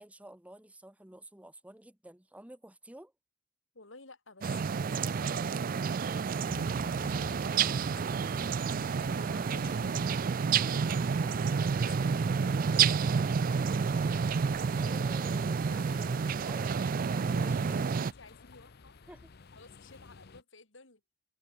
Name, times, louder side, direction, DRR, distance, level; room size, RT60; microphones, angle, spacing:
voice 1, 0.0-3.1 14.7-16.1 16.5-16.7 19.1-19.3, right 1 dB, 5° right, 1.0 m, -50 dB
voice 2, 3.7-8.4 9.0-10.1 10.5-13.2 15.3-19.1 19.5-21.0, left 3 dB, 70° left, 3.8 m, -54 dB
sound 1, 4.4-18.1, right 6 dB, 45° right, 0.4 m, -29 dB
sound 2, 6.5-20.4, left 3 dB, 55° left, 0.7 m, -51 dB
head